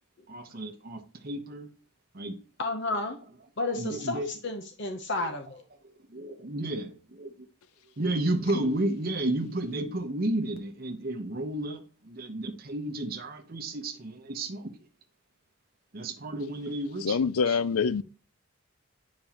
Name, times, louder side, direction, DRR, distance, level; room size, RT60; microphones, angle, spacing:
voice 1, 0.3-1.7 2.1-2.4 3.8-4.3 5.2-5.3 6.1-7.5 8.0-14.7 15.9-17.6, right 1 dB, 45° right, 0.9 m, -32 dB
voice 2, 2.6-3.2 3.6-5.6, left 2 dB, 55° left, 0.8 m, -32 dB
voice 3, 17.0-18.0, left 5 dB, 85° left, 0.5 m, -25 dB
9.0 x 5.2 x 2.9 m
head